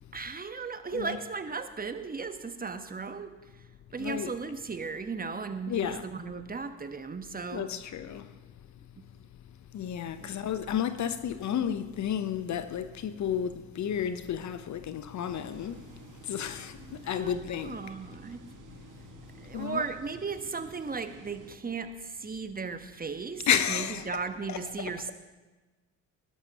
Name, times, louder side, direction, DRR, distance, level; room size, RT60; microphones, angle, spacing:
voice 1, 0.1-3.3 3.9-7.7 9.0-9.1 10.2-10.3 16.8-18.4 19.4-25.1, right 5 dB, 20° right, 1.3 m, -36 dB
voice 2, 4.0-4.3 5.7-6.1 7.5-8.4 9.7-15.9 16.2-17.9 19.5-19.9 23.5-24.1 24.5-25.1, left 9 dB, 45° left, 0.9 m, -32 dB
sound 1, 15.2-21.6, right 5 dB, 50° right, 1.9 m, -52 dB
20.0 x 11.0 x 3.0 m
hypercardioid pair, 55°, 39 cm